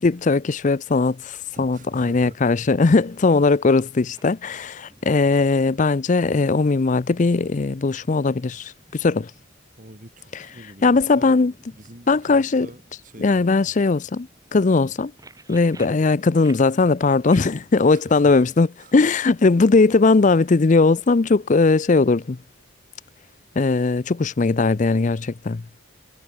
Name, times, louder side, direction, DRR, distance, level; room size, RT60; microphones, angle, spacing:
voice 1, 0.0-9.3 10.3-10.4 10.8-11.5 12.1-12.7 13.2-15.1 15.5-18.7 18.9-22.4 23.6-25.6, left 3 dB, 40° left, 0.5 m, -19 dB
voice 2, 1.5-2.4 2.9-3.0 9.8-11.4 11.7-13.6 15.8-16.1 17.9-18.5 18.8-18.9, right 1 dB, 40° right, 3.8 m, -44 dB
sound 1, 2.7-22.6, right 2 dB, 20° right, 7.0 m, -55 dB
head